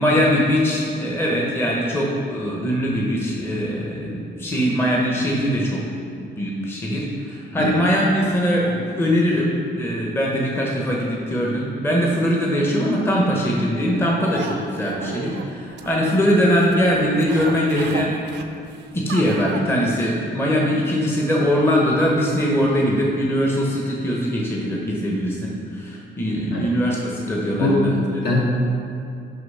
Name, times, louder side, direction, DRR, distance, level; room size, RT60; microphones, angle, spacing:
voice 1, 0.0-5.8 6.4-18.1 18.9-28.2, equal, 10° left, -3 dB, 0.8 m, -21 dB
sound 1, 14.2-19.6, right 6 dB, 65° right, 0.5 m, -35 dB
voice 2, 27.6-28.4, left 2 dB, 60° left, -3 dB, 1.7 m, -21 dB
6.6 x 5.5 x 5.5 m, 2.4 s
cardioid pair, 155°, 19 cm